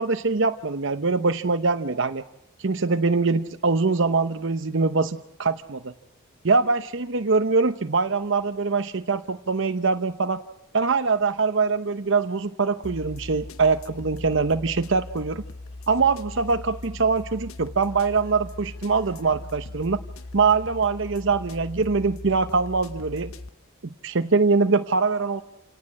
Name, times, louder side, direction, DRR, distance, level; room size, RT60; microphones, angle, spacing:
voice 1, 0.0-2.2 2.6-5.9 6.4-10.4 10.7-15.4 15.9-20.0 20.3-23.3 23.8-25.4, right 4 dB, 60° right, 9 dB, 0.8 m, -23 dB
sound 1, 12.8-23.5, left 2 dB, 80° left, 1.0 m, -39 dB
28.5 x 18.5 x 7.6 m, 0.80 s
head